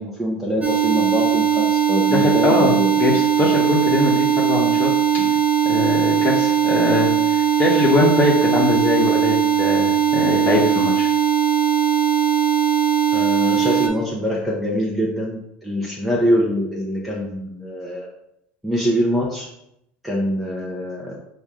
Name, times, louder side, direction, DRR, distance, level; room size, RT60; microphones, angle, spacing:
voice 1, 0.0-3.2 5.2-5.3 13.1-18.1 18.6-19.5 20.0-21.2, equal, ahead, -4 dB, 0.9 m, -24 dB
sound 1, 0.6-13.9, right 8 dB, 25° right, 1.1 m, -19 dB
voice 2, 2.1-2.7 3.0-4.9 5.6-11.1, left 2 dB, 35° left, -3 dB, 1.1 m, -21 dB
5.1 x 2.7 x 3.6 m, 0.81 s
hypercardioid pair, 85°, 5 cm